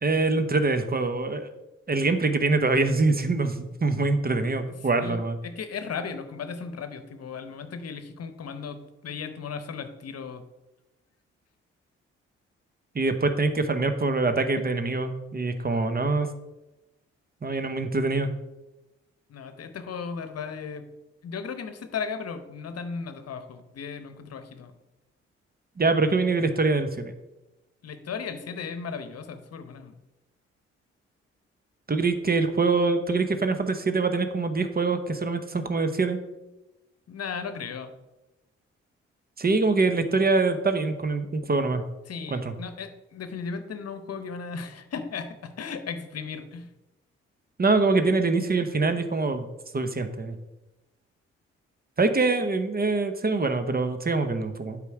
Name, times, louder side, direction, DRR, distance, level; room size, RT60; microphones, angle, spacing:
voice 1, 0.0-1.5 1.9-5.4 12.9-16.3 17.4-18.3 25.8-27.1 31.9-36.2 39.4-41.8 42.3-42.5 47.6-49.5 49.7-50.4 52.0-54.8, right 3 dB, 30° right, 9 dB, 1.0 m, -24 dB
voice 2, 4.9-10.4 14.6-14.7 19.3-20.9 21.2-24.7 27.8-29.9 37.1-37.9 42.1-46.7, left 5 dB, 55° left, 10 dB, 0.9 m, -36 dB
8.2 x 5.1 x 4.8 m, 1.0 s
supercardioid pair, 45°, 29 cm